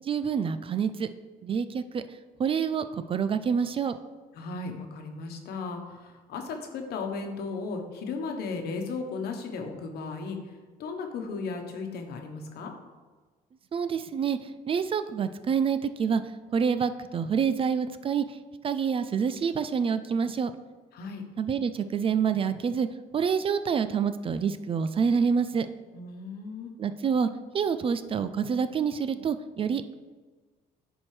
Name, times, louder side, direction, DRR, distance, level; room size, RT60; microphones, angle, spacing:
voice 1, 0.0-1.1 1.4-4.0 13.7-18.4 18.6-20.5 21.4-22.9 23.1-25.7 26.8-29.9, right 6 dB, 35° right, 11 dB, 0.3 m, -27 dB
voice 2, 4.3-12.7 20.9-21.2 25.9-26.7, left 4 dB, 70° left, 4 dB, 1.1 m, -36 dB
10.0 x 4.5 x 3.3 m, 1.4 s
cardioid pair, 110°, 17 cm